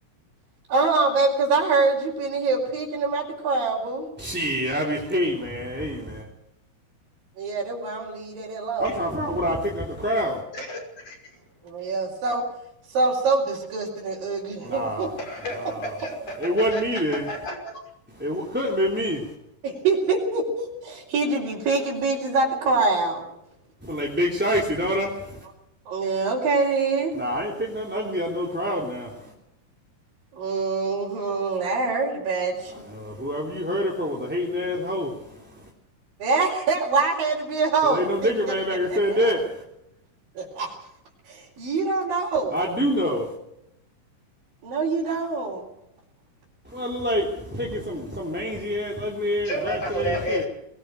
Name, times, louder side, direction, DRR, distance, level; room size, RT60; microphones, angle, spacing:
voice 1, 0.7-4.1 7.4-9.1 11.6-12.4 12.9-15.1 19.6-23.3 25.9-27.1 30.3-32.9 36.2-38.3 39.1-39.3 40.4-40.7 41.3-42.6 44.6-45.7, right 3 dB, 75° right, -4 dB, 5.7 m, -25 dB
voice 2, 4.2-6.3 8.8-10.4 14.6-15.1 15.5-15.9 16.4-17.3 18.1-19.3 23.8-25.4 27.1-29.3 32.6-35.7 37.8-39.6 42.5-43.3 46.6-50.4, equal, 5° right, -2 dB, 2.8 m, -27 dB
voice 3, 10.5-11.2 15.2-16.4 16.7-16.8 17.3-17.8 18.3-18.4 49.5-50.5, equal, 45° left, 1 dB, 7.0 m, -31 dB
22.5 x 20.0 x 6.6 m, 0.81 s
omnidirectional pair, 4.1 m